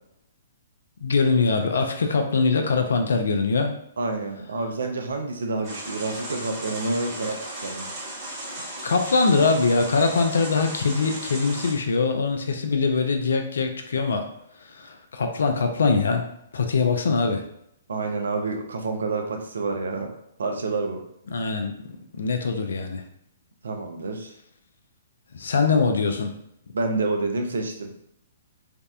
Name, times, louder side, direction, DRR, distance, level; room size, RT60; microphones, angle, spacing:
voice 1, 1.0-3.7 7.1-7.2 8.8-14.3 14.6-16.3 16.5-17.4 21.3-21.8 22.1-23.0 25.3-26.3, left 4 dB, 65° left, 5 dB, 0.4 m, -22 dB
voice 2, 4.0-7.9 17.9-20.1 20.4-21.0 23.6-24.3 26.7-27.9, right 3 dB, 70° right, 4 dB, 0.4 m, -28 dB
sound 1, 5.6-11.7, right 1 dB, 35° right, 1.0 m, -36 dB
2.5 x 2.0 x 2.3 m, 0.77 s
figure-of-eight pair, 120°, 0 cm